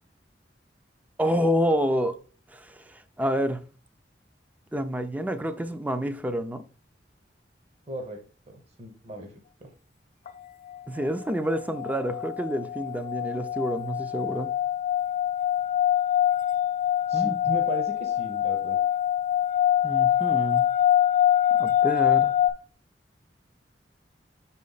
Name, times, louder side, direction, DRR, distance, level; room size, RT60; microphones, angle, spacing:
voice 1, 1.2-2.1 2.5-3.6 4.7-6.6 10.9-14.5 17.1-17.3 19.8-20.7 21.6-22.3, equal, 10° right, 0.5 m, -28 dB
voice 2, 7.9-8.2 8.5-9.3 9.6-9.7 17.1-18.8, right 1 dB, 40° right, 0.9 m, -37 dB
sound 1, 10.3-10.4 10.7-11.1 11.5-22.5, left 11 dB, 50° left, 0.6 m, -24 dB
5.7 x 4.2 x 3.9 m
head